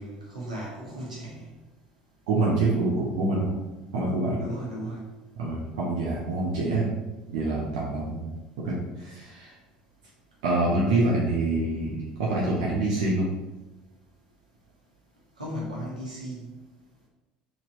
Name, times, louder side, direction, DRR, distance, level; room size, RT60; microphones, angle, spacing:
voice 1, 0.0-1.5 4.4-5.0 15.4-16.4, equal, 85° right, -6 dB, 1.3 m, -36 dB
voice 2, 2.3-3.6 3.9-4.4 5.3-6.9 7.3-8.3 8.6-9.5 10.4-13.3, right 2 dB, 60° right, -5 dB, 0.9 m, -26 dB
4.7 x 4.2 x 2.7 m, 1.1 s
figure-of-eight pair, 65°, 4 cm